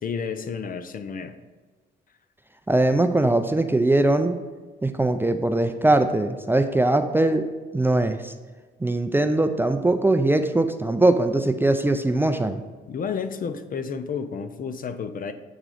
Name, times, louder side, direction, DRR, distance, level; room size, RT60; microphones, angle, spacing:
voice 1, 0.0-1.4 12.9-15.3, left 6 dB, 45° left, 10 dB, 0.5 m, -31 dB
voice 2, 2.7-4.4 4.8-7.5 7.7-8.3 8.8-12.6, right 2 dB, 10° right, 7 dB, 0.4 m, -21 dB
8.1 x 3.7 x 4.9 m, 1.4 s
cardioid pair, 90°, 20 cm